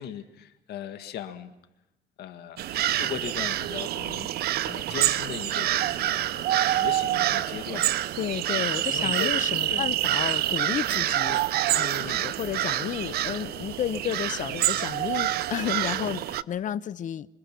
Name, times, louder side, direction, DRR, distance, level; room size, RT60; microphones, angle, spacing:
voice 1, 0.0-1.5 2.2-4.3 4.7-7.9 8.8-9.3 9.7-9.9 12.0-12.3 16.0-16.2, left 10 dB, 70° left, 1.8 m, -38 dB
sound 1, 2.6-16.4, right 13 dB, 65° right, 0.7 m, -27 dB
voice 2, 8.2-11.4 11.7-17.3, left 10 dB, 50° left, 0.7 m, -32 dB
26.0 x 25.0 x 6.0 m
cardioid pair, 110°, 17 cm